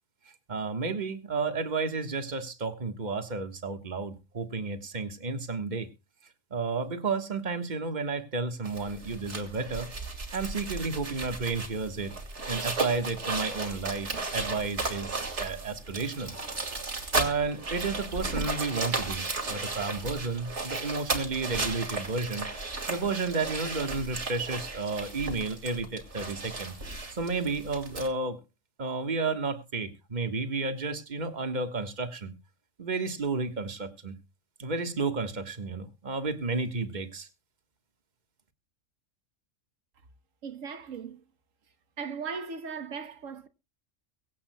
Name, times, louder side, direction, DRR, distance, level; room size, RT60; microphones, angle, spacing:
voice 1, 0.5-5.9 6.5-9.9 10.3-12.1 12.5-16.3 17.1-22.5 22.9-26.8 27.1-28.4 28.8-32.3 32.8-34.2 34.6-37.3, right 4 dB, 35° right, 1.5 m, -32 dB
sound 1, 8.7-28.1, right 3 dB, 65° right, 2.6 m, -35 dB
voice 2, 40.4-41.2 42.0-43.5, right 5 dB, 85° right, 1.5 m, -38 dB
23.0 x 8.5 x 2.2 m
omnidirectional pair, 1.3 m